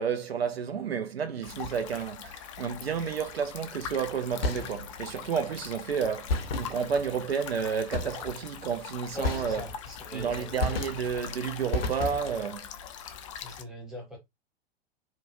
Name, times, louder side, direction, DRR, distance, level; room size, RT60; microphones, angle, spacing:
voice 1, 0.0-9.6 10.1-12.7, right 7 dB, 70° right, 0.5 m, -31 dB
sound 1, 1.4-13.6, left 8 dB, 30° left, 0.4 m, -42 dB
sound 2, 4.4-5.1 6.3-7.2 7.9-8.5 9.2-10.0 10.6-11.3 11.7-12.5, left 3 dB, 65° left, 0.7 m, -32 dB
voice 2, 9.1-10.5 13.3-14.2, equal, ahead, 0.9 m, -41 dB
3.0 x 2.1 x 2.6 m
figure-of-eight pair, 100°, 32 cm